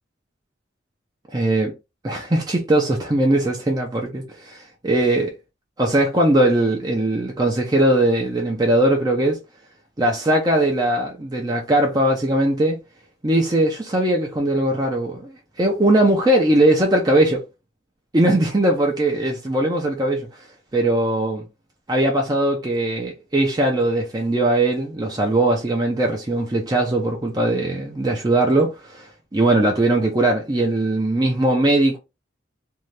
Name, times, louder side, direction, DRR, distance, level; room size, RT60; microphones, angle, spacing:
voice 1, 1.3-1.7 2.0-5.3 5.8-9.4 10.0-12.8 13.2-17.4 18.1-20.3 20.7-21.4 21.9-32.0, right 1 dB, 20° right, 0.5 m, -20 dB
2.7 x 2.4 x 3.2 m
head